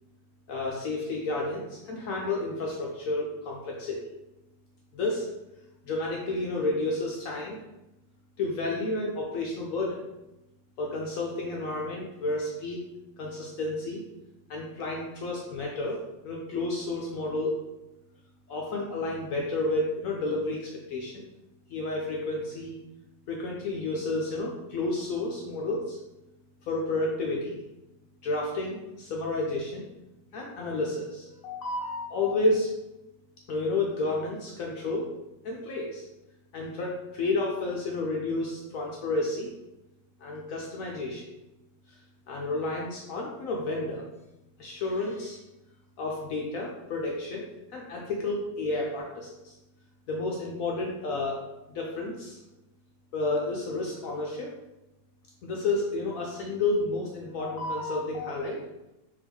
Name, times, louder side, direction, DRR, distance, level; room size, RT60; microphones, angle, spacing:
voice 1, 0.5-4.1 4.9-5.3 5.8-7.6 8.4-10.0 10.8-12.8 13.2-14.0 14.5-16.0 16.2-17.6 18.5-21.2 21.7-22.8 23.3-26.0 26.6-27.6 28.2-29.8 30.3-32.7 33.5-35.1 35.4-36.0 36.5-39.5 40.2-41.3 42.3-44.1 44.6-45.4 46.0-47.5 47.7-49.5 50.1-51.4 51.7-52.4 53.1-54.5 55.4-58.6, left 2 dB, 75° left, -1 dB, 0.7 m, -31 dB
3.7 x 2.9 x 3.4 m, 0.97 s
omnidirectional pair, 2.0 m